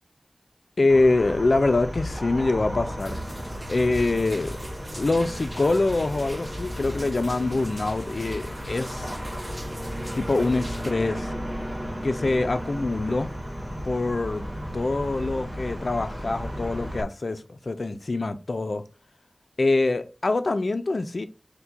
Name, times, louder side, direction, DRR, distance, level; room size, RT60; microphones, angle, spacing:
voice 1, 0.8-3.2 3.7-4.6 4.9-9.1 10.1-11.3 12.0-13.3 13.8-14.5 14.7-18.8 19.6-21.3, left 2 dB, 70° left, 0.4 m, -24 dB
sound 1, 0.9-17.0, equal, 15° right, 1.5 m, -34 dB
sound 2, 3.0-10.9, right 1 dB, 30° right, 0.8 m, -45 dB
4.7 x 2.2 x 3.9 m
wide cardioid pair, 65°, 0 cm